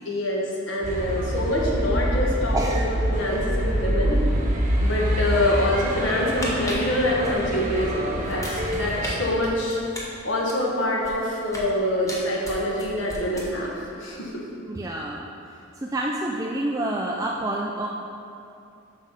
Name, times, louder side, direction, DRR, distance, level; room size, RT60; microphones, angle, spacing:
voice 1, 0.0-4.2 4.8-9.8 10.2-13.7 14.0-14.4, left 1 dB, 65° left, -3 dB, 1.4 m, -25 dB
sound 1, 0.8-9.2, equal, 35° right, 1.0 m, -26 dB
voice 2, 2.5-2.9 14.7-15.3 15.8-17.9, right 1 dB, 15° right, -1 dB, 0.3 m, -28 dB
sound 2, 6.2-7.9 8.2-9.1 9.4-11.7 12.1-13.8 14.1-14.3, left 1 dB, 15° left, 1.0 m, -37 dB
7.7 x 6.1 x 4.1 m, 2.6 s
head